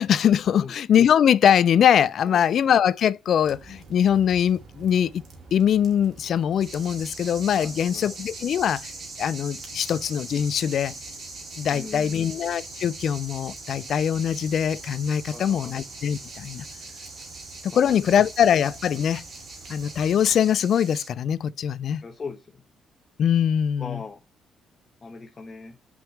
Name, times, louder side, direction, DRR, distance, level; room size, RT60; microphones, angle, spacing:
voice 1, 0.0-5.2 5.5-8.9 9.2-10.9 11.6-16.6 17.6-19.2 19.7-22.0 23.2-24.0, left 9 dB, 65° left, 0.4 m, -22 dB
sound 1, 3.4-20.4, right 3 dB, 65° right, 2.4 m, -49 dB
sound 2, 6.6-21.1, right 3 dB, 50° right, 2.9 m, -41 dB
voice 2, 7.6-8.2 11.7-12.3 15.3-15.7 17.2-17.3 17.7-18.0 22.0-22.6 23.8-24.2 25.0-25.8, left 4 dB, 35° left, 1.1 m, -40 dB
6.0 x 5.2 x 3.2 m
cardioid pair, 90°, 0 cm